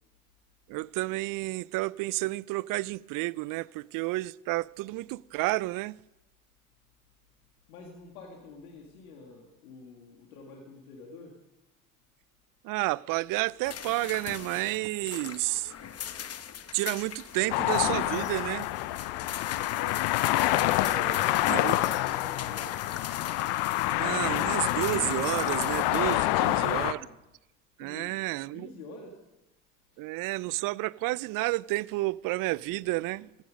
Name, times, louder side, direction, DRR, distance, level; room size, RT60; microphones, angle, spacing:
voice 1, 0.7-6.0 12.6-15.7 16.7-18.7 21.5-21.7 24.0-27.0 27.8-28.7 30.0-33.3, right 20 dB, 50° right, 0.5 m, -31 dB
voice 2, 7.7-11.4 20.8-22.8 26.2-27.2 27.8-28.2 28.5-29.2 29.9-30.0, left 3 dB, 80° left, 2.2 m, -46 dB
sound 1, 13.6-26.2, left 8 dB, 35° left, 1.1 m, -40 dB
sound 2, 17.5-26.9, left 16 dB, 65° left, 0.8 m, -27 dB
15.0 x 10.5 x 5.2 m
hypercardioid pair, 70°, 43 cm